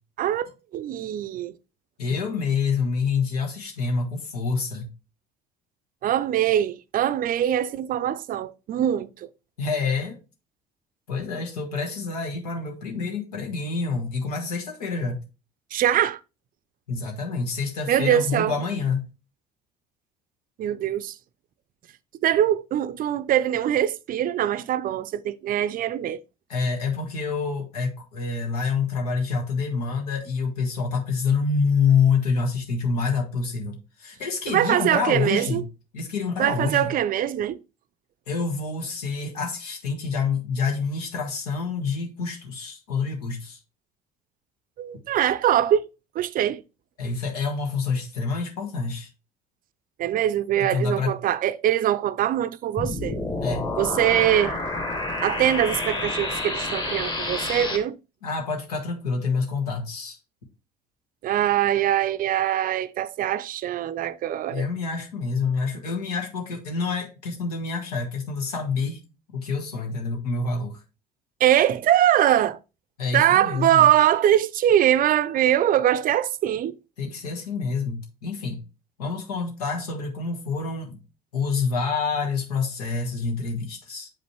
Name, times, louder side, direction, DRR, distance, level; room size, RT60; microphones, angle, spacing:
voice 1, 0.2-1.5 6.0-9.3 15.7-16.2 17.9-18.5 20.6-21.1 22.2-26.2 34.5-35.6 36.4-37.6 44.8-45.9 46.2-46.6 50.0-53.1 53.8-54.6 55.2-58.0 61.2-64.7 71.4-72.6 73.1-76.8, right 11 dB, 45° right, 0.4 m, -22 dB
voice 2, 2.0-4.9 9.6-10.2 11.1-15.2 16.9-19.1 26.5-35.6 35.9-36.9 38.3-43.6 47.0-49.1 50.7-51.1 53.4-53.7 58.2-60.2 64.5-69.0 69.3-70.8 73.0-73.9 77.0-78.6 79.0-81.0 81.3-84.1, left 5 dB, 85° left, 1.3 m, -27 dB
sound 1, 52.8-57.8, left 2 dB, 20° left, 1.7 m, -29 dB
7.0 x 5.2 x 3.0 m
hypercardioid pair, 60°, 19 cm